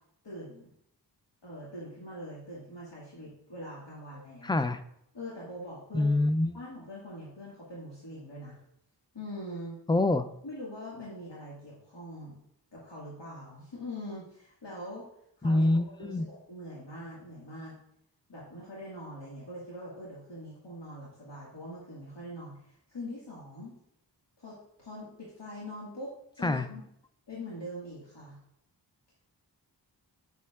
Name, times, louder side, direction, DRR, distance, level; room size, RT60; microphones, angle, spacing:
voice 1, 0.2-0.7 1.4-4.6 5.1-6.1 6.5-8.6 9.1-9.8 10.4-12.3 12.7-15.1 15.4-17.8 18.3-23.7 24.4-26.8 27.3-28.4, left 1 dB, 75° left, -7 dB, 2.0 m, -43 dB
voice 2, 4.4-4.8 5.9-6.6 9.9-10.3 15.4-16.3 26.4-26.7, left 2 dB, 10° left, 10 dB, 0.4 m, -25 dB
8.3 x 6.6 x 2.4 m, 0.74 s
wide cardioid pair, 50°, 43 cm